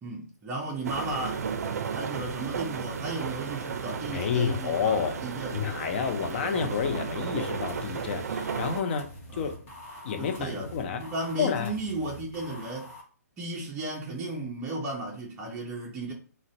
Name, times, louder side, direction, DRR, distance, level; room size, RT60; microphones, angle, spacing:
voice 1, 0.0-1.5 1.9-5.6 9.3-9.5 10.2-12.9 13.4-16.1, right 2 dB, 15° right, 0.5 m, -35 dB
sound 1, 0.8-8.8, right 6 dB, 65° right, 0.4 m, -34 dB
voice 2, 4.1-5.2 5.5-9.5 10.0-11.0 11.4-11.7, left 7 dB, 40° left, 0.5 m, -29 dB
sound 2, 7.7-13.0, left 1 dB, 25° left, 0.9 m, -45 dB
2.5 x 2.1 x 3.9 m
hypercardioid pair, 155°, 9 cm